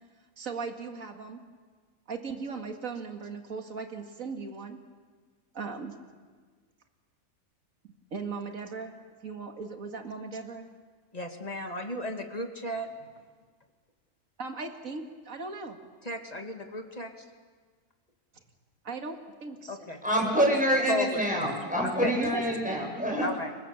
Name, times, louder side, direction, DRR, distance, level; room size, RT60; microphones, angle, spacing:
voice 1, 0.4-1.4 2.1-4.8 5.5-5.9 8.1-8.9 9.2-10.7 14.4-15.8 18.8-20.0 22.0-22.7, right 4 dB, 65° right, 4 dB, 2.4 m, -37 dB
voice 2, 11.1-13.2 16.0-17.3 19.7-20.4 20.9-21.2 21.8-22.1 23.2-23.6, left 1 dB, 25° left, 4 dB, 2.4 m, -35 dB
voice 3, 20.0-23.3, equal, 5° right, -1 dB, 6.7 m, -26 dB
30.0 x 24.0 x 7.2 m, 1.5 s
omnidirectional pair, 1.5 m